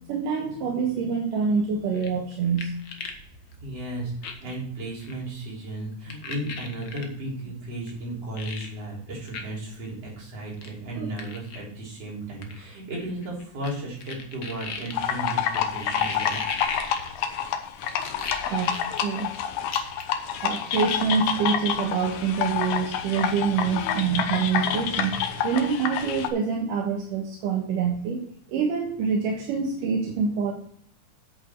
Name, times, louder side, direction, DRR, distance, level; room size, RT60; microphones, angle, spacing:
voice 1, 0.1-2.7 11.0-11.1 18.5-19.3 20.4-28.2 28.5-30.5, right 6 dB, 80° right, 0 dB, 2.9 m, -26 dB
sound 1, 1.9-3.2 3.5-3.6 4.2-4.5 5.0-5.2 6.1-7.0 7.9-8.0 8.4-8.7 9.3-9.4 9.7-9.8 10.6-10.7 11.2-11.6 12.4-13.7 14.0-17.4 17.8-19.4 19.7-20.2 20.5-21.0, left 5 dB, 55° left, 1.2 m, -35 dB
voice 2, 3.6-16.4, right 1 dB, 50° right, -4 dB, 4.8 m, -34 dB
sound 2, 14.9-26.3, left 9 dB, 90° left, 2.6 m, -28 dB
8.8 x 8.2 x 4.4 m, 0.63 s
omnidirectional pair, 3.7 m